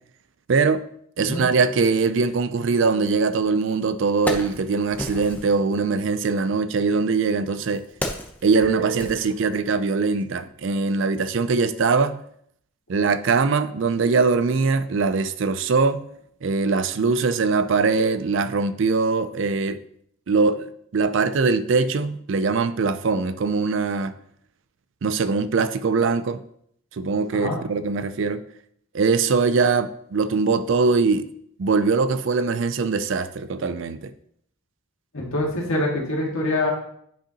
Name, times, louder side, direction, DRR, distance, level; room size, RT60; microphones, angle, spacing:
voice 1, 0.5-0.8 1.2-7.8 8.4-12.2 12.9-16.1 16.4-19.8 20.3-24.1 25.0-26.4 26.9-28.4 28.9-31.3 31.6-34.1, right 4 dB, 60° right, 0.4 m, -22 dB
Wood, 3.4-3.5 3.9-5.6 6.6-9.9 10.2-10.4, left 1 dB, 10° left, 0.6 m, -33 dB
voice 2, 35.1-36.7, left 1 dB, 70° left, 1.9 m, -25 dB
8.7 x 5.2 x 2.9 m
head